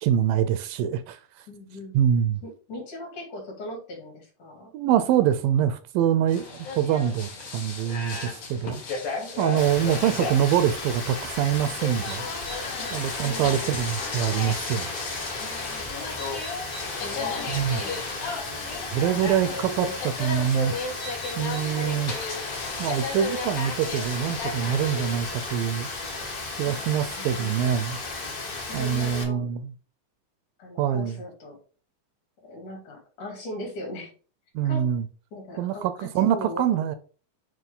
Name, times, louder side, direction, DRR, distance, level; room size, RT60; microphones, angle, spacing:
voice 1, 0.0-1.5 1.9-2.4 4.7-8.8 9.4-12.2 12.9-14.9 17.5-17.8 18.9-20.8 21.4-22.1 22.8-25.9 26.6-28.0 28.7-29.7 30.8-31.2 34.6-35.1 35.6-37.0, right 9 dB, 80° right, 2.1 m, -25 dB
voice 2, 1.5-2.0 2.4-4.7 9.2-10.0 12.8-12.9 13.2-13.7 15.4-16.1 17.0-18.9 19.1-20.0 26.7-26.8 27.1-27.5 28.6-29.5 30.6-31.6 32.4-34.1 34.6-34.9 35.3-36.6, left 1 dB, 60° left, 3.5 m, -39 dB
sound 1, 6.3-25.6, left 4 dB, 90° left, 4.6 m, -35 dB
Rain, 9.6-29.2, left 3 dB, 45° left, 1.3 m, -35 dB
9.1 x 3.1 x 3.7 m
omnidirectional pair, 4.1 m